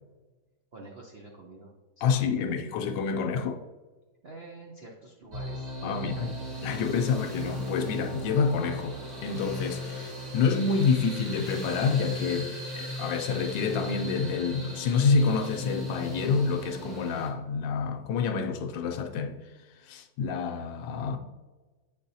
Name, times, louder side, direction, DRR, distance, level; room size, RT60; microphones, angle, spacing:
voice 1, 0.7-2.5 4.2-6.3, right 2 dB, 80° right, 0.5 m, -48 dB
voice 2, 2.0-3.6 5.8-6.3 6.6-9.0 9.2-19.4 19.8-21.2, left 5 dB, 75° left, 1.2 m, -28 dB
sound 1, 5.3-17.3, left 1 dB, 40° right, 1.7 m, -37 dB
8.1 x 5.4 x 2.7 m
omnidirectional pair, 2.2 m